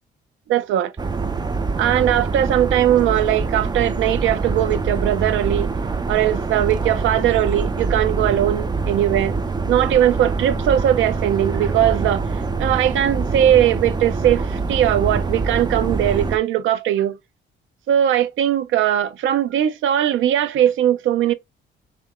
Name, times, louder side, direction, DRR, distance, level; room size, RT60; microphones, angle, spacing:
voice 1, 0.5-0.9 1.8-5.7 6.1-9.4 9.7-12.3 12.6-17.2 17.9-21.3, right 11 dB, 80° right, 0.5 m, -19 dB
sound 1, 1.0-16.4, right 4 dB, 20° right, 0.5 m, -24 dB
3.3 x 2.9 x 3.5 m
cardioid pair, 90°, 20 cm